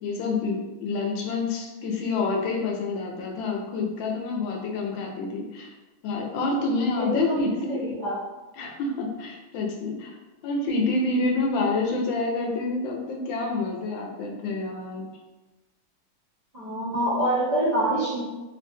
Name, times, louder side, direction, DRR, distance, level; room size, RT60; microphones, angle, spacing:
voice 1, 0.0-5.7 6.0-7.8 8.5-10.2 10.4-15.1, left 3 dB, 75° left, 0 dB, 1.3 m, -28 dB
voice 2, 6.9-8.2 16.5-18.2, right 1 dB, 80° right, -12 dB, 0.3 m, -26 dB
3.2 x 2.5 x 2.6 m, 1.1 s
omnidirectional pair, 2.1 m